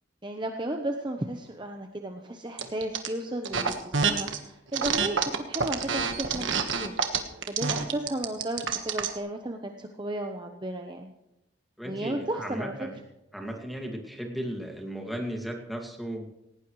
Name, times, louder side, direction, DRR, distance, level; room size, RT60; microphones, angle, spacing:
voice 1, 0.2-7.0 7.5-11.1 11.8-12.7, right 1 dB, 25° right, 3 dB, 0.9 m, -34 dB
sound 1, 2.6-3.1 3.4-4.4 4.7-9.2, right 6 dB, 80° right, 1.4 m, -27 dB
voice 2, 11.8-13.0 13.3-16.3, equal, ahead, 0 dB, 2.1 m, -35 dB
18.5 x 17.5 x 3.2 m, 0.89 s
head